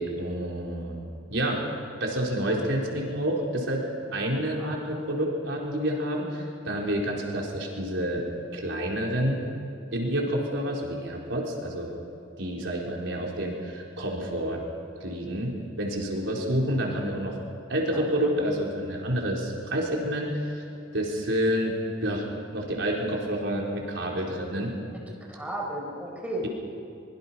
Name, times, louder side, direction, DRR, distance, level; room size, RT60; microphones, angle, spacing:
voice 1, 0.0-1.6 2.0-3.8 4.1-8.2 8.5-9.6 9.9-11.9 12.4-14.6 15.0-17.3 17.7-20.6 20.9-22.3 22.5-24.7, equal, 85° right, -1 dB, 4.4 m, -29 dB
voice 2, 4.6-5.0 17.9-18.3 24.9-25.0 25.3-26.4, right 1 dB, 10° right, -1 dB, 4.8 m, -35 dB
24.5 x 23.0 x 5.8 m, 2.7 s
head